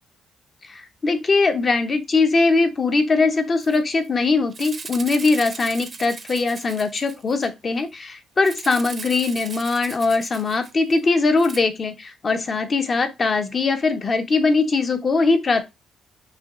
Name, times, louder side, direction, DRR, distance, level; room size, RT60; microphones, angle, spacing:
voice 1, 0.6-15.6, left 3 dB, 40° left, 0.7 m, -21 dB
Rattle (instrument), 3.6-3.8 4.0-4.1 4.5-7.5 8.4-11.0 11.4-11.6, right 5 dB, 40° right, 0.5 m, -38 dB
5.7 x 2.3 x 2.4 m
cardioid pair, 90°, 0 cm